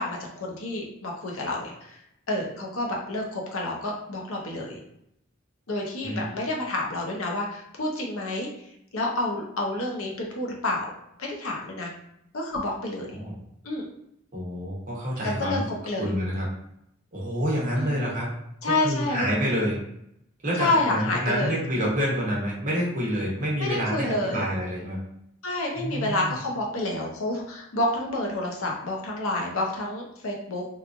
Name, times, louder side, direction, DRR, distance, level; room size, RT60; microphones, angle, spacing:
voice 1, 0.0-2.0 2.3-4.8 5.7-8.5 8.9-10.9 11.2-11.9 12.3-13.2 13.6-13.8 15.2-15.6 15.8-16.1 17.8-18.1 18.6-19.3 20.6-21.5 23.6-24.4 25.4-30.6, left 2 dB, 75° left, -1 dB, 0.7 m, -29 dB
voice 2, 14.3-15.6 16.0-16.5 17.1-18.3 18.6-19.8 20.4-25.0 25.8-26.4, equal, 40° right, -4 dB, 0.9 m, -28 dB
2.9 x 2.4 x 2.5 m, 0.77 s
head